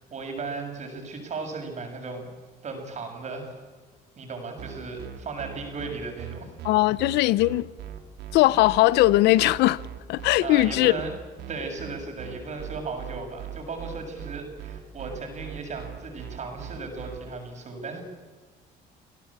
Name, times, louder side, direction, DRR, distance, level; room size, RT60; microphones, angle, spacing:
voice 1, 0.0-2.3 2.6-3.6 4.2-6.5 10.4-11.1 11.5-18.0, right 3 dB, 45° right, 7.0 m, -36 dB
sound 1, 4.6-17.2, right 11 dB, 80° right, 3.0 m, -39 dB
voice 2, 6.6-7.7 8.3-9.8 10.1-10.9, left 18 dB, 85° left, 0.8 m, -20 dB
28.0 x 17.0 x 8.7 m
cardioid pair, 110°, 17 cm